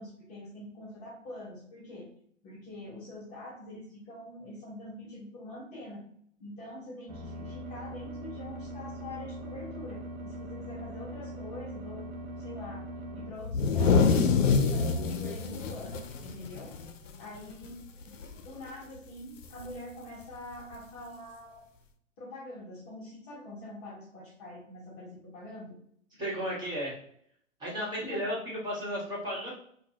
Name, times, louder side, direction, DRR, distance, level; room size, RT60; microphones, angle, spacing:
voice 1, 0.0-2.1 2.4-6.0 6.4-12.1 12.4-12.9 13.1-16.7 17.2-17.8 18.1-18.2 18.4-21.7 22.2-25.8 28.0-28.4, left 1 dB, 30° left, -4 dB, 0.8 m, -44 dB
sound 1, 7.1-13.3, equal, 35° right, 0.6 m, -41 dB
sound 2, 13.4-17.2 17.5-17.6 18.0-18.5 19.6-19.7 20.7-20.8, left 5 dB, 70° left, 0.6 m, -26 dB
voice 2, 26.2-27.0 27.6-29.5, equal, 10° right, -6 dB, 1.4 m, -34 dB
3.8 x 2.2 x 2.7 m, 0.65 s
figure-of-eight pair, 120°, 39 cm